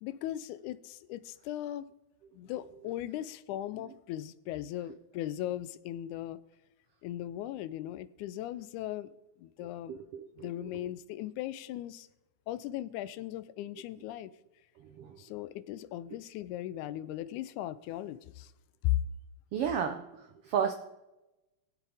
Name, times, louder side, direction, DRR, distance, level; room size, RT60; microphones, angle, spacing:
voice 1, 0.0-1.9 2.3-6.4 7.0-9.1 9.4-9.9 10.4-12.1 12.5-14.3 15.2-18.5 18.8-19.0, left 13 dB, 80° left, 2.0 m, -37 dB
voice 2, 9.9-10.5 14.8-15.2 19.5-20.7, right 8 dB, 80° right, 1.3 m, -33 dB
20.0 x 7.4 x 3.4 m
omnidirectional pair, 3.5 m